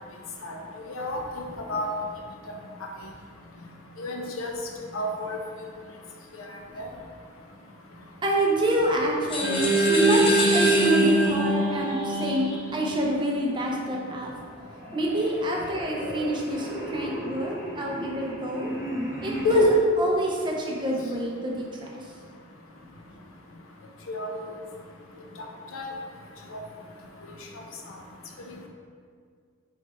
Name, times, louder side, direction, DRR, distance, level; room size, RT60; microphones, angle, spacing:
voice 1, 0.9-1.9 4.0-4.5 4.9-5.4 6.8-6.9 24.1-24.5 25.7-25.9 26.5-26.6, left 1 dB, 80° left, 1 dB, 0.6 m, -32 dB
voice 2, 8.2-14.3 14.9-18.7 19.2-22.0, right 1 dB, 25° right, -2 dB, 0.5 m, -27 dB
sound 1, 9.3-11.5, left 2 dB, 25° left, 0.5 m, -29 dB
sound 2, 9.4-13.8, right 2 dB, ahead, 0.8 m, -24 dB
sound 3, 13.8-14.3 14.5-19.7, left 2 dB, 45° left, 1.2 m, -30 dB
3.3 x 3.0 x 4.2 m, 2.1 s
head